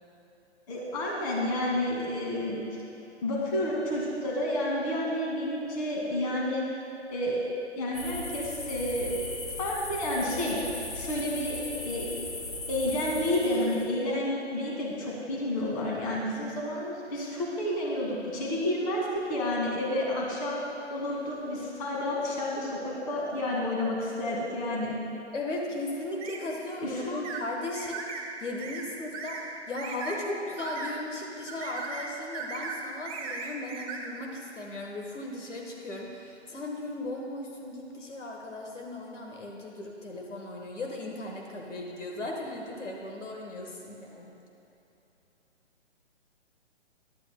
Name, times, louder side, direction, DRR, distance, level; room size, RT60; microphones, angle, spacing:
voice 1, 0.7-2.6 3.2-6.6 7.1-7.5 7.8-9.2 9.6-10.6 10.9-12.3 12.7-20.6 20.9-25.0 26.8-27.2, left 1 dB, 35° left, -3 dB, 2.2 m, -30 dB
sound 1, 7.9-13.9, left 2 dB, 55° left, 2.4 m, -38 dB
voice 2, 25.3-28.0 28.4-44.4, left 2 dB, 85° left, 0 dB, 1.5 m, -37 dB
sound 2, 26.2-26.4 27.2-27.4 27.7-28.3 28.6-28.9 29.1-29.4 29.8-30.2 30.6-30.9 31.5-32.1 32.3-32.8 33.0-34.0, right 5 dB, 30° right, 1.0 m, -37 dB
14.0 x 11.5 x 2.2 m, 3.0 s
hypercardioid pair, 145°, 35 cm